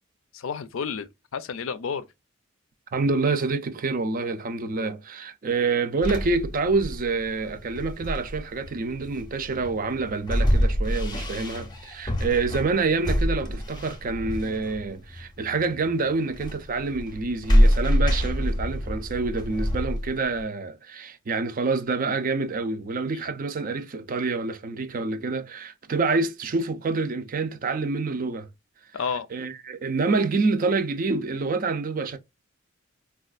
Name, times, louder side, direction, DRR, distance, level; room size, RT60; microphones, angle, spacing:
voice 1, 0.3-2.1 23.1-23.2 28.9-29.3, left 6 dB, 80° left, 0.4 m, -31 dB
voice 2, 2.9-28.5 29.3-32.2, right 3 dB, 45° right, 0.5 m, -27 dB
sound 1, 6.0-20.4, equal, 20° left, 0.6 m, -26 dB
4.2 x 2.3 x 2.4 m
head